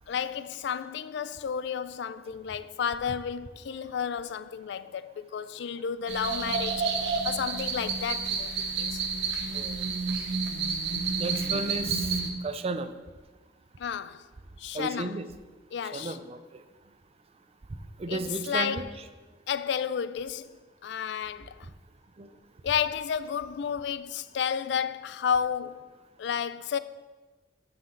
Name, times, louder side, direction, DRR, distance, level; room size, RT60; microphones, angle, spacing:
voice 1, 0.1-6.9 7.2-9.0 13.8-14.3 14.6-15.2 15.7-16.2 18.1-18.9 19.5-21.7 22.6-25.9 26.2-26.8, left 7 dB, 65° left, 0.4 m, -32 dB
sound 1, 6.1-12.3, right 4 dB, 65° right, 1.0 m, -30 dB
voice 2, 11.2-12.1 12.4-12.9 14.7-15.3 15.9-16.6 18.0-18.9 22.2-22.3, right 3 dB, 35° right, 0.5 m, -33 dB
11.0 x 5.8 x 3.8 m
head